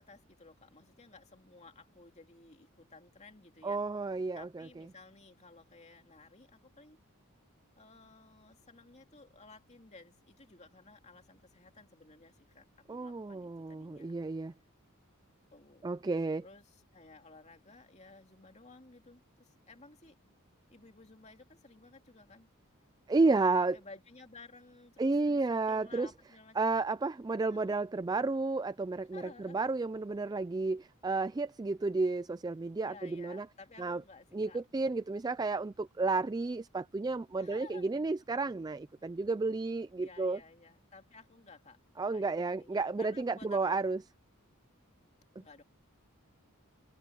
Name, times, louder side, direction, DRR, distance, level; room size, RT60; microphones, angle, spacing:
voice 1, 0.0-3.8 4.3-7.0 7.7-14.1 15.5-15.9 16.4-20.2 20.7-22.5 23.1-26.7 27.5-27.8 29.1-29.6 32.9-34.6 37.4-37.9 40.0-41.8 42.1-43.8 45.4-45.6, left 3 dB, 30° left, 2.6 m, -56 dB
voice 2, 3.6-4.7 12.9-14.5 15.8-16.4 23.1-23.8 25.0-26.1 26.6-33.5 33.8-34.0 34.3-40.4 42.0-44.0, right 3 dB, 20° right, 0.3 m, -32 dB
head